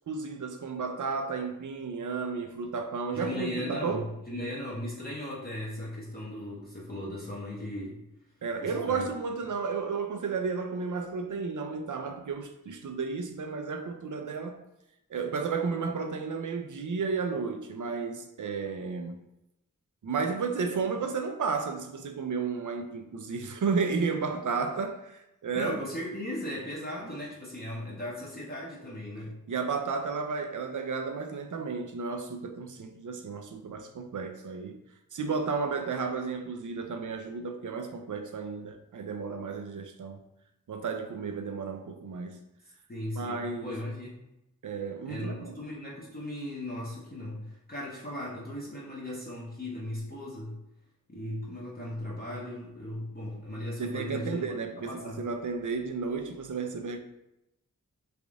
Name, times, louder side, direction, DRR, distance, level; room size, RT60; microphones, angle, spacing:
voice 1, 0.1-4.0 8.4-14.6 15.1-19.2 20.0-25.8 29.5-34.8 35.1-40.2 40.7-42.4 43.2-43.8 44.6-45.6 53.8-57.0, right 5 dB, 60° right, 0.5 m, -33 dB
voice 2, 3.1-8.0 8.6-9.0 25.5-29.3 42.9-44.2 45.1-50.6 51.1-54.4 54.8-55.2, left 1 dB, 25° left, 0.7 m, -37 dB
3.5 x 2.5 x 3.4 m
wide cardioid pair, 60°, 35 cm